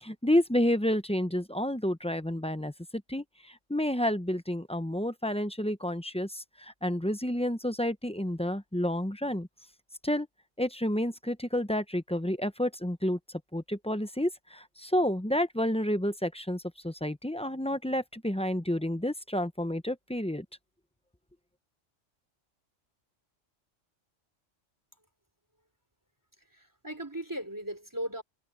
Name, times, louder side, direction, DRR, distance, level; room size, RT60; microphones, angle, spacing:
voice 1, 0.0-9.5 10.0-10.3 10.6-13.2 13.5-20.4, left 1 dB, 5° left, 0.6 m, -30 dB
voice 2, 26.4-28.2, right 1 dB, 15° right, 3.8 m, -37 dB
omnidirectional pair, 1.3 m